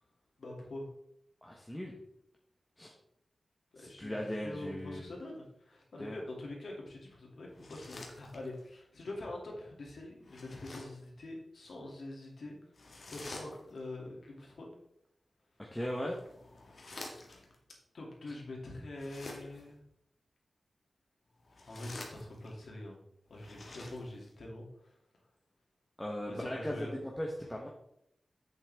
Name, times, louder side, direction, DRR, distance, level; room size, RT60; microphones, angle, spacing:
voice 1, 0.4-0.9 3.7-12.6 13.1-14.7 17.9-19.8 21.7-23.0 23.3-24.9 26.3-26.9, left 1 dB, 75° left, -1 dB, 2.5 m, -44 dB
voice 2, 1.4-1.9 2.8-2.9 3.8-5.1 6.0-6.2 15.6-16.2 26.0-26.9 27.2-27.7, equal, 10° left, -1 dB, 1.0 m, -38 dB
sound 1, 7.5-8.7 10.2-11.1 12.7-13.9 15.7-17.6 18.9-19.8 21.4-22.6 23.3-24.4, left 2 dB, 55° left, 1.6 m, -49 dB
8.0 x 7.0 x 3.5 m, 0.77 s
wide cardioid pair, 135°, 0 cm